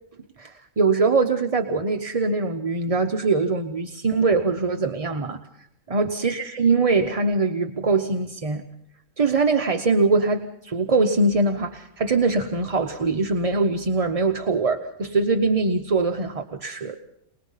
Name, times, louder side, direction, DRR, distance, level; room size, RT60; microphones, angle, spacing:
voice 1, 0.4-5.4 5.9-8.6 9.2-17.0, right 3 dB, 35° right, 5 dB, 0.7 m, -22 dB
24.5 x 19.5 x 5.6 m, 0.80 s
omnidirectional pair, 1.4 m